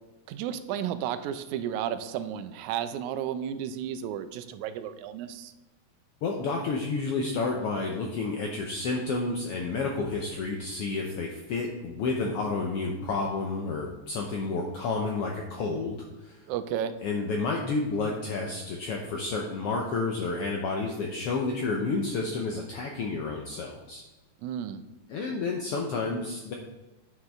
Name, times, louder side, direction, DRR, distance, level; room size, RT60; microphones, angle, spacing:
voice 1, 0.3-5.5 16.5-16.9 24.4-24.8, right 9 dB, 80° right, 11 dB, 2.0 m, -33 dB
voice 2, 6.2-16.4 17.0-24.0 25.1-26.5, left 3 dB, 75° left, 1 dB, 1.4 m, -30 dB
9.5 x 6.3 x 3.5 m, 1.1 s
omnidirectional pair, 3.4 m